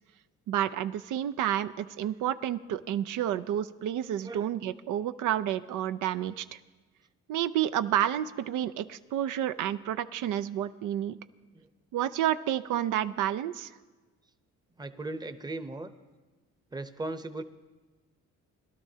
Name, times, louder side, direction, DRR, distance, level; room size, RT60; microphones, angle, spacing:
voice 1, 0.5-6.6 7.3-11.2 11.9-13.7, right 11 dB, 85° right, 12 dB, 0.5 m, -30 dB
voice 2, 4.2-4.5 11.5-11.7 14.8-15.9 16.7-17.4, right 2 dB, 15° right, 10 dB, 0.7 m, -38 dB
21.5 x 12.0 x 2.8 m, 1.3 s
cardioid pair, 90°, 30 cm